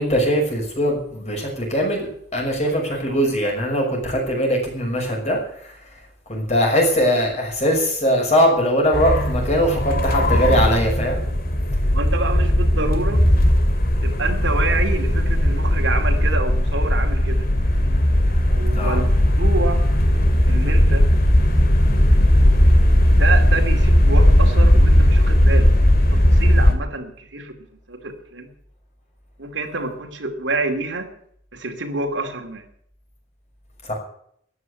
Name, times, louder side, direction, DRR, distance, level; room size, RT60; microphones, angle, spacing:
voice 1, 0.0-5.7 6.3-11.2 18.7-19.0 33.8-33.9, equal, 35° left, 0 dB, 6.1 m, -21 dB
sound 1, 8.9-26.7, left 1 dB, 50° left, 2.6 m, -17 dB
voice 2, 11.9-13.2 14.0-17.5 18.5-19.0 19.4-19.8 20.5-21.1 23.2-25.7 26.1-27.5 27.9-28.5 29.4-31.1 31.5-32.7, right 3 dB, 70° right, 4 dB, 2.7 m, -27 dB
14.0 x 10.0 x 8.1 m, 0.67 s
head